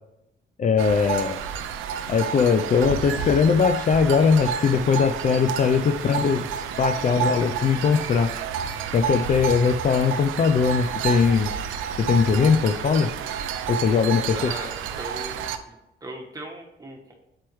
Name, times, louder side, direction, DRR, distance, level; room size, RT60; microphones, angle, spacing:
voice 1, 0.6-1.4 2.1-6.5 6.8-8.3 8.9-11.5 12.0-13.1 13.7-14.5, left 6 dB, 40° left, 8 dB, 0.4 m, -20 dB
sound 1, 0.8-15.6, right 7 dB, 90° right, 0.5 m, -30 dB
voice 2, 14.3-15.7 16.0-17.2, right 1 dB, 20° right, 0 dB, 1.4 m, -38 dB
8.6 x 4.4 x 3.1 m, 0.90 s
cardioid pair, 90°, 20 cm